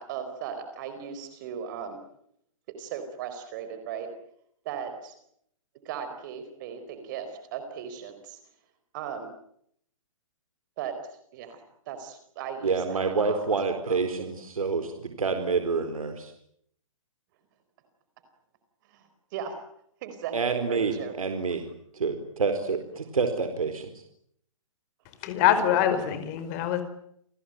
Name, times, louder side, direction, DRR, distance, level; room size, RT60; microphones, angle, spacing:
voice 1, 0.0-2.0 2.7-4.1 4.6-5.2 5.8-8.4 8.9-9.3 10.8-13.5 13.9-14.2 18.9-19.6 20.0-21.1 25.5-25.6, right 7 dB, 35° right, 9 dB, 4.4 m, -37 dB
voice 2, 12.6-16.3 20.3-21.7 21.9-23.9, right 4 dB, 85° right, 7 dB, 4.4 m, -28 dB
voice 3, 25.2-26.8, left 10 dB, 30° left, 9 dB, 4.8 m, -24 dB
30.0 x 21.0 x 9.1 m, 0.71 s
hypercardioid pair, 150°, 18 cm